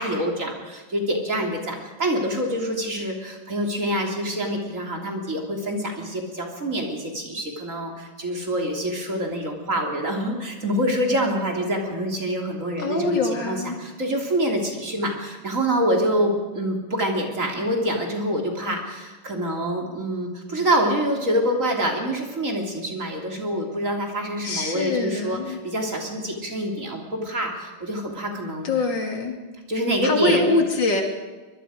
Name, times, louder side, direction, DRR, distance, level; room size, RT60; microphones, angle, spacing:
voice 1, 0.0-28.9 29.7-30.5, equal, 45° right, 1 dB, 3.7 m, -26 dB
voice 2, 12.8-13.8 24.4-25.6 28.6-29.4 30.0-31.0, left 3 dB, 80° left, 3 dB, 3.4 m, -24 dB
24.5 x 21.5 x 5.1 m, 1.3 s
omnidirectional pair, 1.9 m